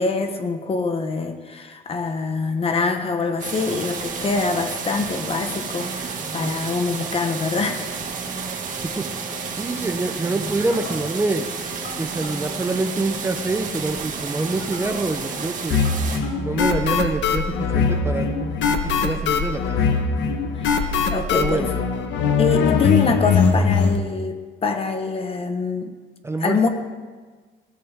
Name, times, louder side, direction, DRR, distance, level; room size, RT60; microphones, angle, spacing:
voice 1, 0.0-7.9 20.6-21.7 22.4-25.9 26.4-26.7, left 4 dB, 30° left, 6 dB, 1.3 m, -24 dB
sound 1, 2.5-18.6, equal, 65° left, 5.7 m, -39 dB
sound 2, 3.4-16.2, right 6 dB, 45° right, 2.0 m, -31 dB
voice 2, 9.0-11.5 12.0-15.9 16.4-18.3 18.6-19.8 21.3-21.7 26.2-26.7, right 2 dB, 15° right, 6 dB, 0.7 m, -26 dB
sound 3, 15.7-24.0, left 5 dB, 85° left, 1.4 m, -21 dB
20.5 x 16.5 x 3.6 m, 1.4 s
cardioid pair, 160°, 18 cm